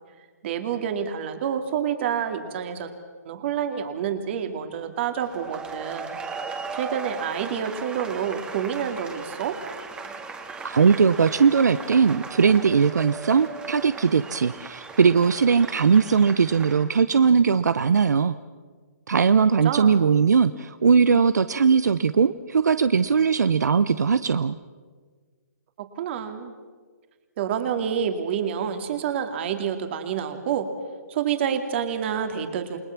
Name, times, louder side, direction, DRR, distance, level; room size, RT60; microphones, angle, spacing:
voice 1, 0.4-2.9 3.3-6.2 6.7-9.6 19.6-19.9 25.8-26.5 27.4-30.7 31.1-32.8, right 8 dB, 40° right, 6 dB, 2.7 m, -28 dB
sound 1, 5.2-16.8, right 4 dB, 10° right, 2.1 m, -37 dB
voice 2, 10.6-18.3 19.1-24.6, right 6 dB, 75° right, 13 dB, 0.8 m, -19 dB
29.0 x 20.0 x 6.0 m, 1.5 s
hypercardioid pair, 145°, 9 cm